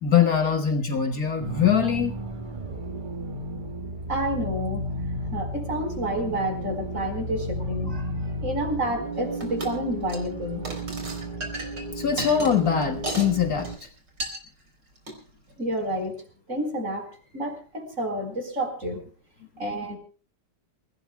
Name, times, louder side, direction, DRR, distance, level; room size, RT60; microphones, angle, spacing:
voice 1, 0.0-2.1 12.0-13.7, left 8 dB, 55° left, 5 dB, 2.0 m, -22 dB
sound 1, 1.4-13.8, right 1 dB, 30° right, 1.8 m, -33 dB
voice 2, 4.1-4.9 5.3-8.1 8.4-10.6 15.6-16.2 16.5-17.1 17.3-19.0 19.6-20.0, right 1 dB, 45° right, 4 dB, 4.9 m, -29 dB
sound 2, 9.4-9.8 10.0-10.3 10.6-13.3 13.6-13.9 14.2-14.4 15.0-15.2, right 2 dB, 85° right, 4.5 m, -34 dB
28.0 x 17.0 x 2.2 m, 0.38 s
omnidirectional pair, 1.9 m